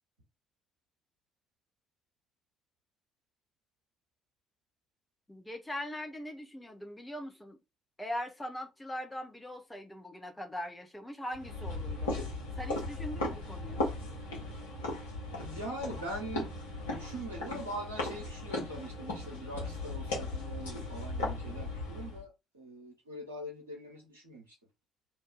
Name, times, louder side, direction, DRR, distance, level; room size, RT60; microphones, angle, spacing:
voice 1, 5.3-7.6 8.0-12.2 12.6-13.8, left 1 dB, 10° left, 1.0 m, -41 dB
sound 1, 11.3-22.2, left 2 dB, 75° left, 1.1 m, -37 dB
voice 2, 15.4-16.5 16.8-24.6, right 1 dB, 80° right, 0.8 m, -42 dB
2.7 x 2.3 x 3.7 m
figure-of-eight pair, 45°, 0 cm